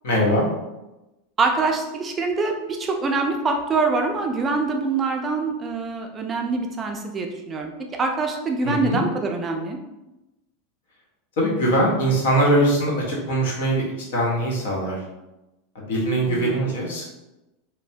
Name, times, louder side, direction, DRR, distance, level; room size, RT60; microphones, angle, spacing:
voice 1, 0.0-0.4 8.6-9.0 11.4-13.8 14.1-15.0 15.7-17.0, right 1 dB, 80° left, -3 dB, 0.9 m, -21 dB
voice 2, 1.4-7.7 8.0-9.8 16.3-16.6, right 3 dB, 20° right, 3 dB, 0.3 m, -24 dB
3.0 x 2.1 x 2.7 m, 0.99 s
supercardioid pair, 145°, 0 cm